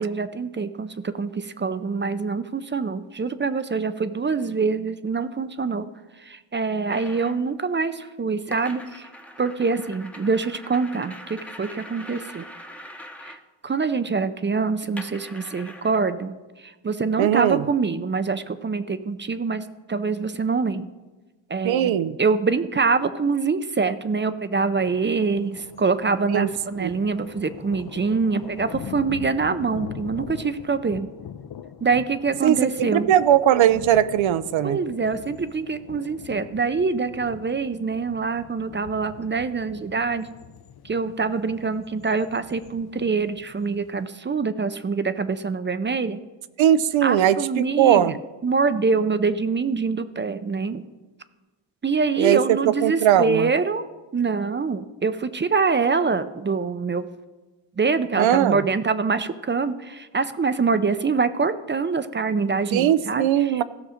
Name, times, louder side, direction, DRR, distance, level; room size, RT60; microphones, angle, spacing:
voice 1, 0.0-5.9 6.2-9.1 9.4-12.5 13.2-20.9 21.5-31.1 31.8-33.1 34.6-40.3 40.8-46.2 47.0-48.1 48.4-50.8 51.8-53.8 54.1-57.1 57.8-63.6, right 4 dB, 25° right, 12 dB, 0.4 m, -25 dB
sound 1, 6.9-7.4 8.5-13.4 15.0-16.0, left 1 dB, 5° left, 0.8 m, -42 dB
voice 2, 17.2-17.7 21.6-22.2 26.3-26.5 26.8-27.0 32.4-34.8 46.6-48.2 52.2-53.5 58.2-58.6 62.7-63.6, right 11 dB, 85° right, 16 dB, 0.6 m, -19 dB
sound 2, 24.8-44.1, left 9 dB, 55° left, 0.6 m, -42 dB
15.5 x 6.3 x 4.9 m, 1.2 s
wide cardioid pair, 100°, 45 cm